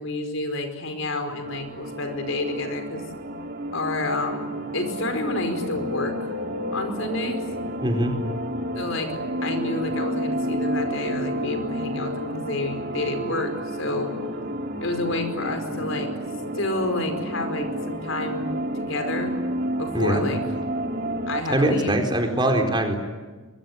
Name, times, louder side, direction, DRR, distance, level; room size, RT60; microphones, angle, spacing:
voice 1, 0.0-3.0 3.7-6.1 6.7-7.4 8.7-9.1 9.4-13.5 13.8-14.1 14.8-16.1 16.5-19.3 19.8-20.4 21.3-22.0, left 2 dB, 65° left, 6 dB, 4.8 m, -29 dB
sound 1, 1.4-21.4, right 1 dB, 45° right, 2.2 m, -30 dB
voice 2, 7.8-8.1 19.9-20.2 21.5-23.0, right 1 dB, 20° right, 4 dB, 4.4 m, -22 dB
24.5 x 23.5 x 9.6 m, 1.3 s
head